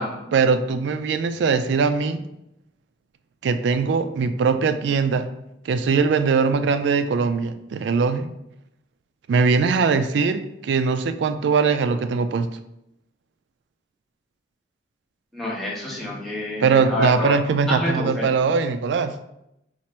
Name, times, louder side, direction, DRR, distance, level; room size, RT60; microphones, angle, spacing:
voice 1, 0.3-2.2 3.4-5.3 5.7-8.3 9.3-12.5 16.6-19.1, right 5 dB, 75° right, 10 dB, 0.3 m, -21 dB
voice 2, 15.3-17.4 17.7-18.3, left 1 dB, ahead, -6 dB, 1.1 m, -27 dB
4.2 x 2.5 x 4.4 m, 0.83 s
head